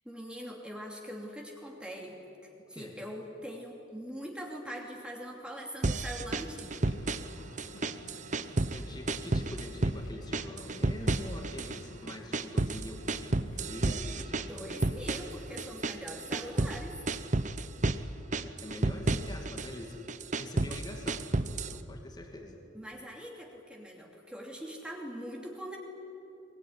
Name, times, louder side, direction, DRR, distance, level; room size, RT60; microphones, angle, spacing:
voice 1, 0.0-6.8 14.5-17.0 22.7-25.8, equal, 5° right, -1 dB, 2.7 m, -42 dB
sound 1, 5.8-7.3 7.6-8.8 9.1-10.0 10.3-11.8 12.1-16.8 17.1-18.0 18.3-19.7 20.1-21.8, right 2 dB, 40° right, 0.8 m, -31 dB
sound 2, 6.3-17.0, left 1 dB, 85° left, 2.7 m, -52 dB
voice 2, 8.7-14.9 18.4-20.1 20.3-22.6, left 1 dB, 20° left, 2 dB, 2.5 m, -44 dB
sound 3, 12.9-20.5 21.4-21.6, right 1 dB, 85° right, 4.2 m, -57 dB
22.5 x 22.0 x 9.8 m, 2.9 s
head